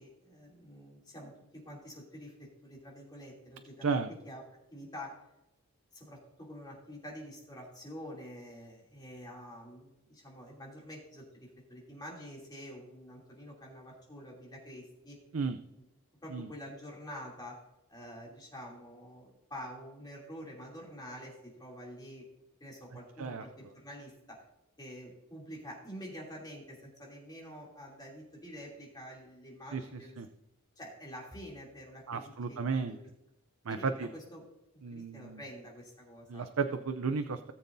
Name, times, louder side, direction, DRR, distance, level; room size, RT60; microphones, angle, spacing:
voice 1, 0.0-4.0 4.2-4.4 4.7-5.2 5.9-15.2 16.2-17.6 17.9-22.2 22.6-24.4 24.8-30.2 30.8-33.0 33.7-33.9 34.1-34.4 34.9-36.5, equal, 20° left, -3 dB, 2.9 m, -47 dB
voice 2, 29.7-30.3 32.1-33.0 33.6-34.1 34.8-35.4 36.3-37.5, right 5 dB, 70° right, 8 dB, 0.5 m, -33 dB
18.0 x 7.2 x 2.7 m, 0.89 s
head